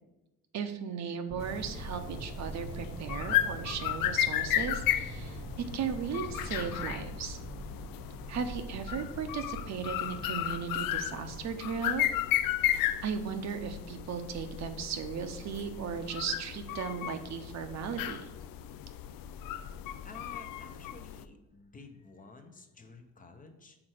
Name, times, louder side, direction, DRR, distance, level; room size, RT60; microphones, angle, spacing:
voice 1, 0.5-5.4 5.7-7.4 8.3-12.0 13.0-18.3, right 7 dB, 55° right, 8 dB, 0.7 m, -36 dB
sound 1, 1.3-12.7, right 2 dB, 25° right, 0.8 m, -44 dB
sound 2, 1.4-21.2, left 12 dB, 85° left, 0.5 m, -34 dB
voice 2, 20.0-23.8, left 3 dB, 25° left, 5 dB, 0.6 m, -52 dB
5.9 x 4.4 x 6.4 m, 1.0 s
cardioid pair, 170°, 33 cm